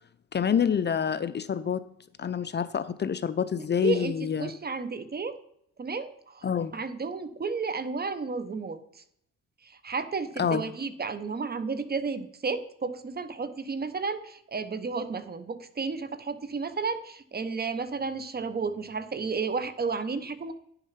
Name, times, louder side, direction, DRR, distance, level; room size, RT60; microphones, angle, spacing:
voice 1, 0.3-1.8 2.2-4.5 6.4-6.7 10.4-10.6, left 7 dB, 35° left, 13 dB, 0.6 m, -27 dB
voice 2, 3.8-4.1 4.4-5.4 5.8-9.0 9.6-20.5, right 4 dB, 30° right, 13 dB, 1.0 m, -32 dB
10.0 x 6.8 x 5.7 m, 0.70 s
cardioid pair, 90°, 30 cm